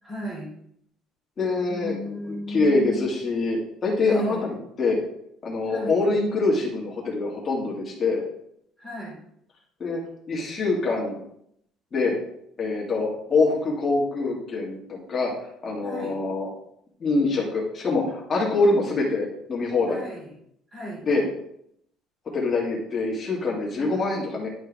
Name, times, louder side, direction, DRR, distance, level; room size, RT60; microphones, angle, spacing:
voice 1, 0.0-0.5 1.4-3.1 4.0-4.5 5.7-6.0 8.8-9.2 15.8-16.2 19.9-20.4 20.7-21.0 23.8-24.0, right 1 dB, 15° right, -4 dB, 2.9 m, -34 dB
voice 2, 1.4-2.1 2.5-4.4 4.8-5.0 5.4-8.2 9.8-10.0 10.3-11.2 11.9-12.2 12.6-15.3 15.6-16.5 17.0-20.0 21.0-21.3 22.3-24.5, left 3 dB, 25° left, -3 dB, 2.0 m, -24 dB
10.5 x 4.6 x 3.5 m, 0.73 s
cardioid pair, 165°, 0 cm